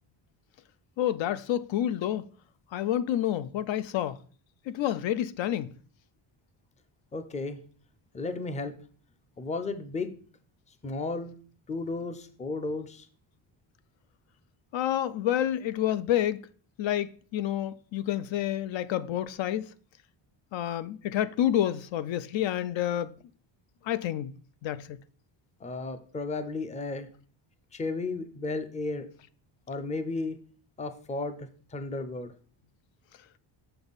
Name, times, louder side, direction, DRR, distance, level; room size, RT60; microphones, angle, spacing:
voice 1, 1.0-2.2 2.7-4.2 4.7-5.7 14.7-16.4 16.8-19.7 20.5-23.1 23.8-24.3 24.6-25.0, left 11 dB, 65° left, 0.5 m, -29 dB
voice 2, 7.1-7.6 8.1-8.7 9.4-10.1 10.8-11.3 11.7-13.1 25.6-27.1 27.7-29.1 29.7-30.4 30.8-31.4 31.7-32.3, left 3 dB, 15° left, 0.5 m, -33 dB
6.9 x 5.5 x 4.0 m
cardioid pair, 150°, 50 cm